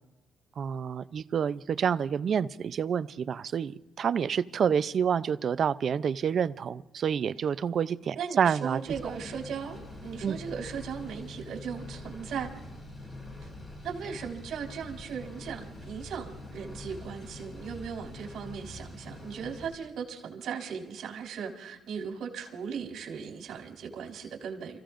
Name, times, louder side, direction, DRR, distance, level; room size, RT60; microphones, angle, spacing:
voice 1, 0.6-8.8 10.2-10.4, right 7 dB, 55° right, 15 dB, 0.6 m, -28 dB
voice 2, 8.2-12.5 13.4-13.5 13.8-24.8, right 7 dB, 75° right, 1 dB, 3.7 m, -38 dB
sound 1, 8.9-19.7, left 2 dB, 30° left, 7.8 m, -44 dB
30.0 x 16.0 x 2.6 m, 1.0 s
cardioid pair, 90°, 0 cm